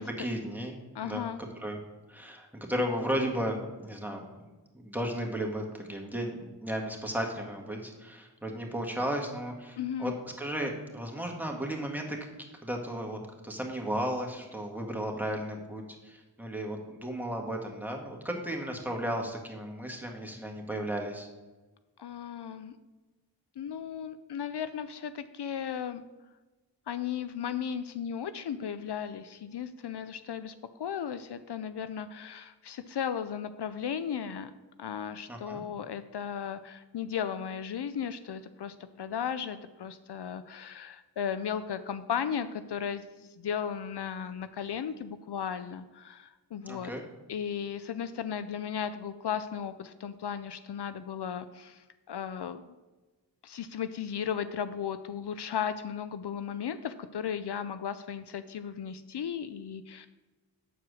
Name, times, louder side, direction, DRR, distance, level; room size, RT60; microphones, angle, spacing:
voice 1, 0.0-1.3 1.6-1.8 2.1-4.2 4.7-12.2 12.6-13.2 13.4-21.3 35.3-35.6 46.7-47.0, equal, 5° right, 0 dB, 1.6 m, -34 dB
voice 2, 0.9-1.4 9.8-10.2 22.0-22.7 23.6-26.0 26.9-34.5 34.8-46.9 47.3-52.6 53.4-60.1, left 8 dB, 70° left, 11 dB, 0.5 m, -35 dB
8.0 x 4.7 x 6.1 m, 1.2 s
wide cardioid pair, 40°, 41 cm